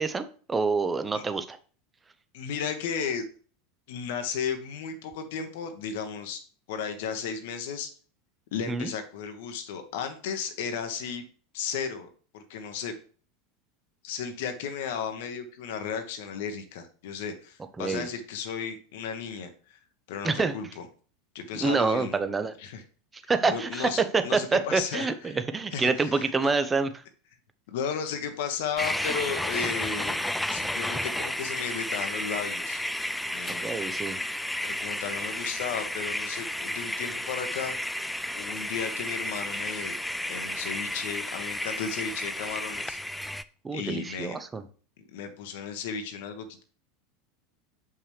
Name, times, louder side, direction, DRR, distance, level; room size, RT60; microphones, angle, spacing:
voice 1, 0.0-1.6 8.7-8.9 17.8-18.1 20.2-20.5 21.6-22.5 23.3-26.9 33.5-34.2 43.6-44.6, right 4 dB, 15° right, 10 dB, 0.7 m, -27 dB
voice 2, 2.3-3.2 3.9-6.4 6.7-7.9 8.5-11.2 11.5-12.1 12.3-12.9 14.0-19.8 20.1-20.8 21.3-22.2 22.6-22.8 23.5-25.4 25.7-26.5 27.7-30.2 30.5-32.8 33.3-33.8 34.6-37.9 38.3-39.9 40.3-43.0 43.7-44.4 45.1-46.6, left 6 dB, 60° left, 7 dB, 1.0 m, -34 dB
sound 1, 28.8-43.4, left 1 dB, 5° left, 0.4 m, -32 dB
7.0 x 5.6 x 3.2 m, 0.42 s
figure-of-eight pair, 80°, 0 cm